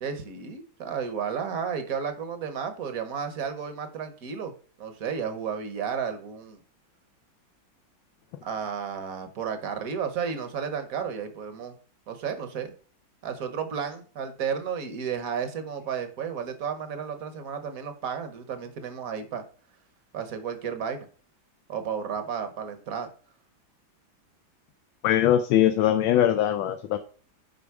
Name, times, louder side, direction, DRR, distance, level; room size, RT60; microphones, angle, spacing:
voice 1, 0.0-4.5 4.8-6.6 8.4-11.7 12.1-12.7 13.2-19.4 20.1-21.1 21.7-23.1, right 7 dB, 50° right, 8 dB, 1.2 m, -32 dB
voice 2, 25.0-27.0, left 11 dB, 80° left, 8 dB, 1.4 m, -21 dB
7.0 x 5.2 x 4.7 m, 0.41 s
omnidirectional pair, 2.2 m